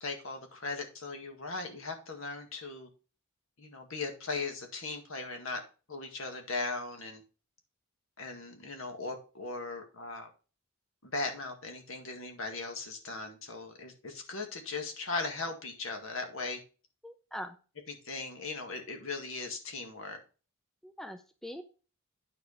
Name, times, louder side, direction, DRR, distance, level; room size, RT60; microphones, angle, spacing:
voice 1, 0.0-2.9 3.6-5.6 5.9-7.2 8.2-10.3 11.0-16.6 17.9-20.2, left 3 dB, 65° left, 4 dB, 1.9 m, -38 dB
voice 2, 17.0-17.6 20.8-21.6, equal, ahead, 7 dB, 0.5 m, -42 dB
9.6 x 4.6 x 5.0 m, 0.35 s
head